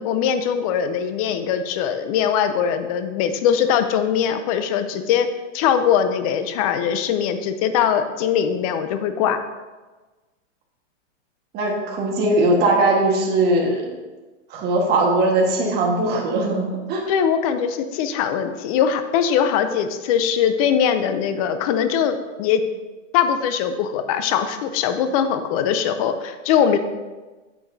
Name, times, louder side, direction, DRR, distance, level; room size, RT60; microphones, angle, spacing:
voice 1, 0.0-5.3 5.5-9.4 17.1-22.6 23.1-26.8, left 8 dB, 30° left, 9 dB, 0.5 m, -21 dB
voice 2, 11.5-13.8 14.5-17.0, right 2 dB, 25° right, 0 dB, 1.5 m, -20 dB
8.7 x 7.9 x 2.7 m, 1.2 s
hypercardioid pair, 150°, 38 cm